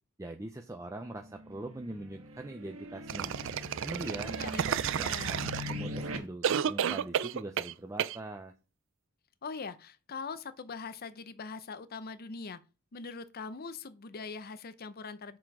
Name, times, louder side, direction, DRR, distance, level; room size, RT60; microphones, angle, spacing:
voice 1, 0.2-3.3 3.8-8.5, right 2 dB, 15° right, 0.6 m, -42 dB
sound 1, 1.2-6.2, equal, 90° right, 1.4 m, -41 dB
sound 2, 3.1-6.0 6.4-7.7 8.0-8.2, right 8 dB, 65° right, 0.4 m, -31 dB
voice 2, 4.0-5.6 9.4-12.6 12.9-15.4, left 4 dB, 45° left, 0.6 m, -42 dB
6.7 x 6.1 x 4.8 m
head